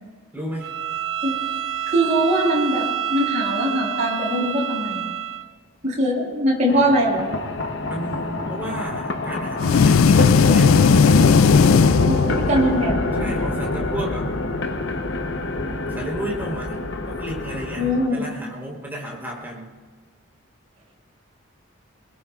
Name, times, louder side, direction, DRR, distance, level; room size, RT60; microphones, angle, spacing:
voice 1, 0.3-0.7 7.8-10.7 13.1-14.3 15.9-16.8 17.0-19.8, equal, 10° right, -4 dB, 3.9 m, -32 dB
Bowed string instrument, 0.6-5.5, right 10 dB, 65° right, 0.7 m, -28 dB
voice 2, 1.9-5.0 5.8-7.3 12.1-13.2 17.7-18.2, equal, 35° right, -4 dB, 6.5 m, -22 dB
sound 1, 6.7-18.1, left 2 dB, 55° left, 1.0 m, -26 dB
sound 2, 9.6-12.8, left 5 dB, 75° left, 0.4 m, -15 dB
24.0 x 21.5 x 2.5 m, 1.5 s
head